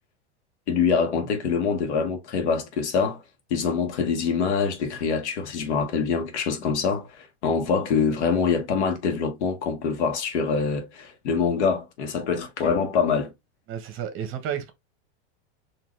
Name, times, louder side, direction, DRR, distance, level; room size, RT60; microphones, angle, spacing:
voice 1, 0.7-3.2 3.5-13.3, left 5 dB, 85° left, 1.4 m, -25 dB
voice 2, 13.7-14.7, right 9 dB, 40° right, 1.1 m, -31 dB
4.1 x 2.8 x 3.1 m
supercardioid pair, 135°, 33 cm